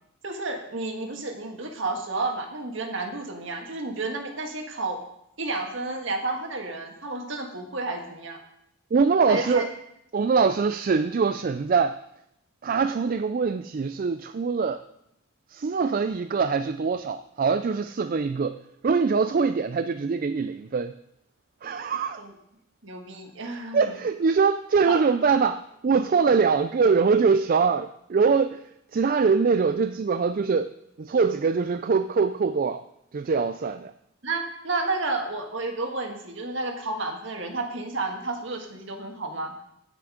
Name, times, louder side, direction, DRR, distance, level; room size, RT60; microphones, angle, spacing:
voice 1, 0.2-5.0 5.4-8.4 9.3-9.7 21.9-22.3 22.8-23.9 24.9-25.0 34.2-39.5, right 3 dB, 60° right, 4 dB, 1.7 m, -31 dB
voice 2, 8.9-9.7 10.1-12.0 12.6-14.8 15.5-20.9 21.6-22.2 23.7-28.6 28.9-30.7 31.0-32.8 33.1-33.9, right 5 dB, 40° right, 11 dB, 0.3 m, -23 dB
16.0 x 6.1 x 5.0 m, 0.78 s
head